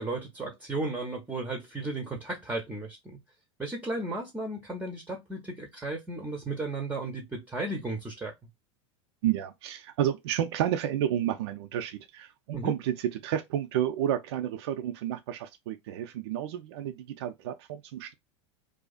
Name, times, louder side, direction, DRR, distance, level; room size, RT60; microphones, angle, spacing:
voice 1, 0.0-3.2 3.6-8.3 12.5-12.7, right 2 dB, 10° right, 0.6 m, -34 dB
voice 2, 9.2-18.1, right 11 dB, 65° right, 0.4 m, -31 dB
2.4 x 2.3 x 2.3 m
hypercardioid pair, 90°, 15 cm